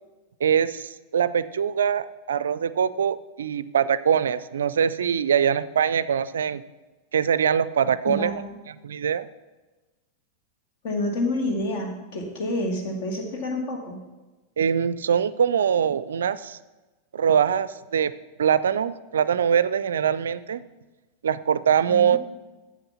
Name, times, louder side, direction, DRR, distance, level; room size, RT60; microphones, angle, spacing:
voice 1, 0.4-6.6 7.1-8.3 8.8-9.3 14.6-16.6 17.1-18.1 18.4-20.6 21.2-22.2, right 8 dB, 65° right, 16 dB, 0.4 m, -23 dB
voice 2, 8.1-8.5 10.8-14.0 21.9-22.2, left 1 dB, 50° left, 2 dB, 2.0 m, -28 dB
8.9 x 7.4 x 5.7 m, 1.2 s
figure-of-eight pair, 90°, 0 cm